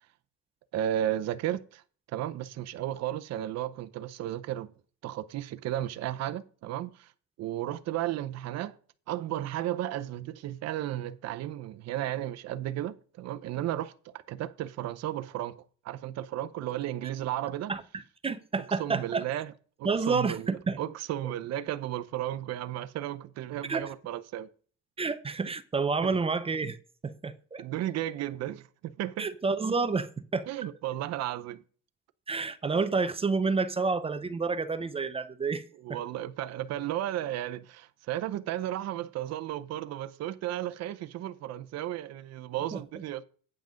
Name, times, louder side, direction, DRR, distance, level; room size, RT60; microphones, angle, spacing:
voice 1, 0.7-1.8 2.1-4.7 5.0-7.1 7.4-8.8 9.1-17.7 18.8-19.5 19.8-24.5 27.6-29.3 30.5-31.6 35.8-43.2, right 12 dB, 55° right, 0.7 m, -34 dB
voice 2, 18.2-19.2 19.8-20.8 21.2-21.3 23.7-23.8 25.0-26.8 27.0-27.6 29.2-30.5 32.3-35.6 42.7-42.8, right 4 dB, 20° right, 0.5 m, -29 dB
9.0 x 5.9 x 5.1 m
cardioid pair, 155°, 33 cm